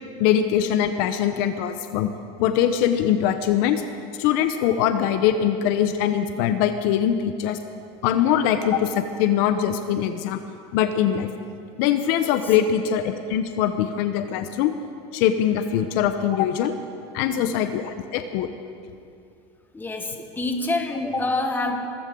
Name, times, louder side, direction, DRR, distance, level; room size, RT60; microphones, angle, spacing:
voice 1, 0.2-2.1 2.4-3.8 4.2-7.6 8.0-10.4 10.7-11.3 11.8-14.7 15.1-16.7 17.1-18.5, left 9 dB, 65° left, 9 dB, 0.9 m, -22 dB
voice 2, 17.2-17.6 19.7-21.9, left 2 dB, 10° left, 3 dB, 1.7 m, -27 dB
24.5 x 14.5 x 3.8 m, 2.5 s
supercardioid pair, 125°, 16 cm